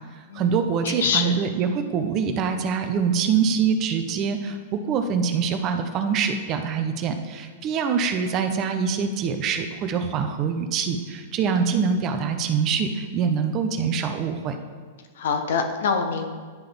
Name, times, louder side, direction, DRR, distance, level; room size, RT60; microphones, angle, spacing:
voice 1, 0.3-14.6, right 6 dB, 35° right, 7 dB, 0.6 m, -24 dB
voice 2, 0.8-1.4 15.2-16.3, left 5 dB, 75° left, 5 dB, 0.9 m, -24 dB
10.5 x 3.8 x 3.5 m, 1.5 s
hypercardioid pair, 140°, 0 cm